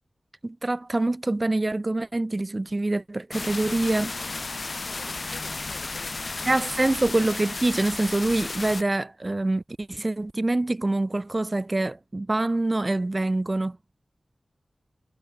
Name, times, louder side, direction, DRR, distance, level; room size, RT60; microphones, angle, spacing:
voice 1, 0.4-4.1 6.5-13.8, right 2 dB, 35° right, 0.3 m, -25 dB
sound 1, 3.3-8.8, left 3 dB, 55° left, 0.8 m, -33 dB
voice 2, 4.8-7.0, left 5 dB, 90° left, 3.7 m, -51 dB
cardioid pair, 50°, 0 cm